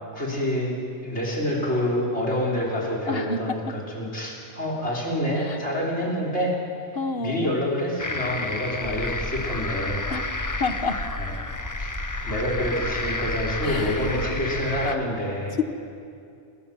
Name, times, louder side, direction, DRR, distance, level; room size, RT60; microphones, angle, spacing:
voice 1, 0.1-6.5 7.2-10.1 11.2-11.3 11.8-11.9 12.2-15.6, equal, 70° left, -2 dB, 6.1 m, -27 dB
voice 2, 3.1-3.7 5.4-5.6 6.9-7.6 10.1-10.2 10.6-11.0 13.6-14.1, left 3 dB, 55° left, 8 dB, 1.7 m, -29 dB
sound 1, 8.0-15.0, left 2 dB, 20° left, 0.8 m, -32 dB
sound 2, 8.8-14.5, left 1 dB, 35° left, 4.4 m, -35 dB
28.5 x 24.0 x 7.7 m, 2.4 s
omnidirectional pair, 1.2 m